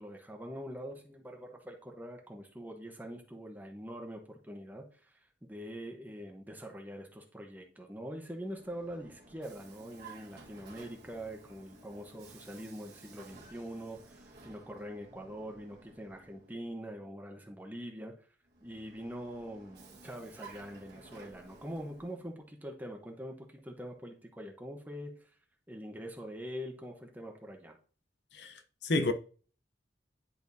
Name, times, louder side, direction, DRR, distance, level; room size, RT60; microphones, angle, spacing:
voice 1, 0.0-18.2 18.6-25.3 25.7-27.8, equal, 10° right, 0.9 m, -44 dB
Vehicle, 8.3-16.8 18.4-22.3, right 3 dB, 65° right, 1.4 m, -55 dB
voice 2, 28.3-29.1, left 2 dB, 70° left, 0.7 m, -31 dB
10.5 x 4.4 x 2.7 m
head